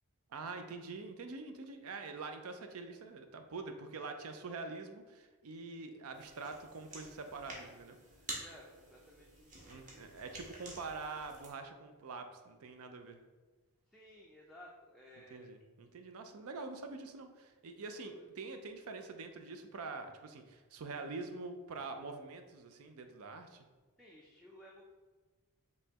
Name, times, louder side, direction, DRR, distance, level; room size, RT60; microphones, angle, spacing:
voice 1, 0.3-8.0 9.6-13.2 15.3-23.6, right 3 dB, 70° right, 6 dB, 0.5 m, -45 dB
sound 1, 6.1-11.5, right 2 dB, 35° right, 1.0 m, -50 dB
voice 2, 8.3-10.2 13.9-15.5 17.9-18.3 24.0-24.8, left 1 dB, ahead, -4 dB, 0.4 m, -57 dB
5.4 x 3.1 x 2.9 m, 1.3 s
head